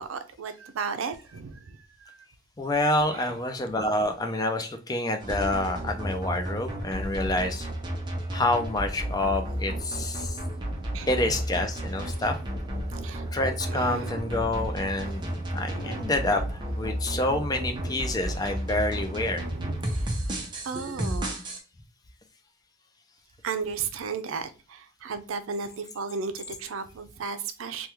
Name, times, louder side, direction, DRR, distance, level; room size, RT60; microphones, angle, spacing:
voice 1, 0.0-2.2 3.1-3.3 10.2-10.3 10.7-11.1 12.7-13.3 13.6-14.3 15.6-16.1 17.3-18.0 19.2-21.3 23.4-27.9, right 5 dB, 90° right, 0.4 m, -35 dB
voice 2, 2.6-7.7 8.3-10.4 11.1-12.4 13.3-19.4, left 1 dB, 20° left, 0.4 m, -28 dB
sound 1, 5.2-21.6, equal, 25° right, 0.6 m, -32 dB
3.4 x 2.2 x 2.9 m
head